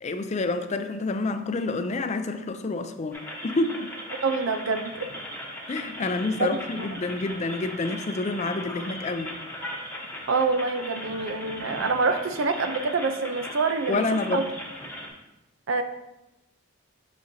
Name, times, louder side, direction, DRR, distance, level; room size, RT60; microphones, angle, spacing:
voice 1, 0.0-3.9 5.7-9.3 13.9-14.5, left 3 dB, 35° left, 0.4 m, -28 dB
sound 1, 3.1-15.1, left 1 dB, 10° left, 0.9 m, -38 dB
voice 2, 4.2-5.1 6.4-6.9 10.3-14.0 14.3-14.5 15.7-15.8, right 4 dB, 85° right, 0.6 m, -26 dB
6.2 x 6.1 x 2.7 m
head